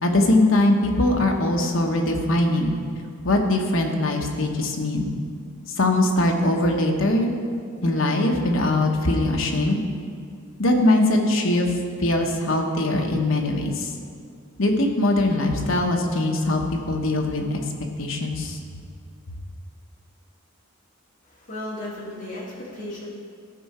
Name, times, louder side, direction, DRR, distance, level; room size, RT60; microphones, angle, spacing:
voice 1, 0.0-2.8 3.2-5.1 5.8-7.3 7.8-9.8 10.6-11.7 12.0-13.9 14.6-18.6, left 1 dB, 65° left, 2 dB, 1.0 m, -21 dB
voice 2, 21.3-23.1, left 1 dB, 35° left, -7 dB, 2.2 m, -35 dB
14.0 x 4.8 x 4.3 m, 2.2 s
head